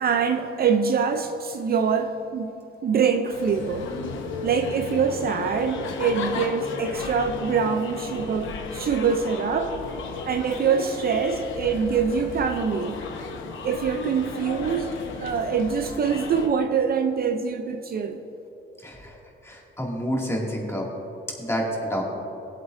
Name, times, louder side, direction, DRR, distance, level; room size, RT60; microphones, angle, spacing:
voice 1, 0.0-2.5 2.8-3.9 4.4-9.8 10.2-13.0 13.6-14.9 15.2-18.2, right 6 dB, 50° right, 0.6 m, -24 dB
sound 1, 3.3-16.5, left 4 dB, 80° left, 1.1 m, -34 dB
voice 2, 18.8-19.2 19.4-20.9 21.4-22.0, equal, 15° left, 2.5 m, -28 dB
17.5 x 8.2 x 2.7 m
cardioid pair, 90°, 20 cm